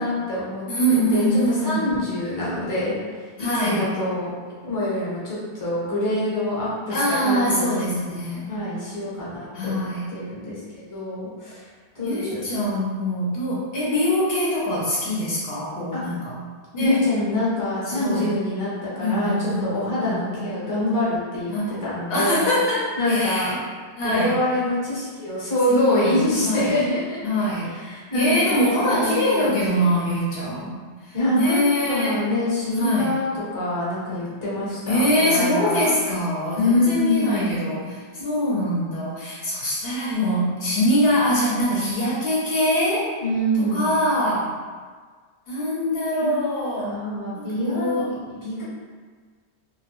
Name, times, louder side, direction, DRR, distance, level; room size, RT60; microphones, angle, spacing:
voice 1, 0.0-4.3 4.6-7.9 8.5-11.7 11.9-12.4 15.9-16.0 16.8-21.5 21.8-22.4 23.0-23.5 24.0-27.2 27.7-29.5 31.1-35.8 36.6-37.6 43.2-43.9 46.2-46.5 46.8-48.6, left 1 dB, 20° left, -8 dB, 0.6 m, -25 dB
voice 2, 0.7-1.8 3.4-3.9 6.9-8.5 9.5-10.1 12.0-16.4 16.7-17.0 17.9-18.3 19.0-20.3 21.5-21.8 22.1-23.6 24.0-24.3 25.7-26.7 27.2-27.7 28.1-32.2 32.7-33.2 34.9-43.1 43.6-44.6 45.5-47.0 47.4-48.1, equal, 65° left, -6 dB, 0.7 m, -23 dB
2.2 x 2.1 x 2.9 m, 1.5 s
omnidirectional pair, 1.1 m